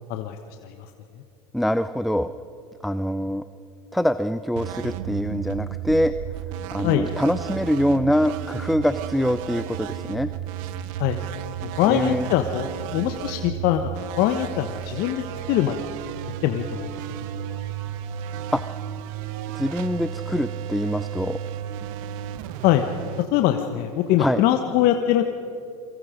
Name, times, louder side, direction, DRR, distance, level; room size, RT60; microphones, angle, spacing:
voice 1, 1.5-2.3 2.8-3.4 3.9-6.1 6.7-10.3 11.8-12.3 18.5-18.6 19.5-21.4 24.2-24.4, equal, ahead, 12 dB, 0.6 m, -24 dB
sound 1, 4.6-24.1, right 10 dB, 65° right, 1.1 m, -33 dB
voice 2, 11.6-12.7 12.9-13.9 14.2-15.9 16.4-16.9 17.5-17.6 22.6-22.8 23.3-25.2, left 12 dB, 55° left, 6 dB, 1.2 m, -22 dB
27.5 x 23.5 x 5.2 m, 2.6 s
hypercardioid pair, 95°, 19 cm